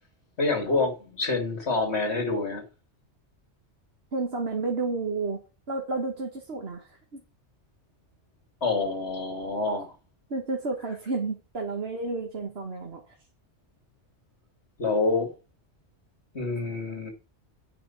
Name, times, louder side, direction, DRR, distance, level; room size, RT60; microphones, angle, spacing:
voice 1, 0.4-2.6 8.6-9.9 14.8-15.3 16.3-17.1, left 3 dB, 65° left, 2.8 m, -27 dB
voice 2, 4.1-5.4 5.7-7.2 10.3-13.0, right 3 dB, 60° right, 1.9 m, -31 dB
9.0 x 5.7 x 7.2 m
omnidirectional pair, 1.2 m